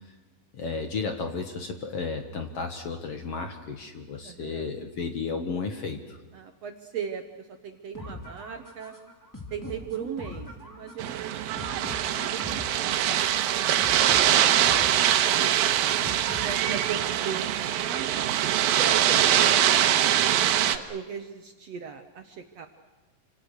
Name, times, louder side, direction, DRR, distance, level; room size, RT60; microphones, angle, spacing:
voice 1, 0.5-6.2, left 4 dB, 55° left, 5 dB, 2.0 m, -33 dB
voice 2, 4.2-4.7 6.3-8.9 9.5-12.8 13.2-15.3 15.5-16.1 16.4-18.4 18.7-20.1 20.5-22.7, right 7 dB, 60° right, 6 dB, 1.8 m, -38 dB
sound 1, 7.9-16.9, left 1 dB, 5° left, 2.4 m, -42 dB
sound 2, 11.0-20.8, right 11 dB, 85° right, 2.8 m, -23 dB
28.0 x 26.0 x 6.5 m, 1.2 s
omnidirectional pair, 4.1 m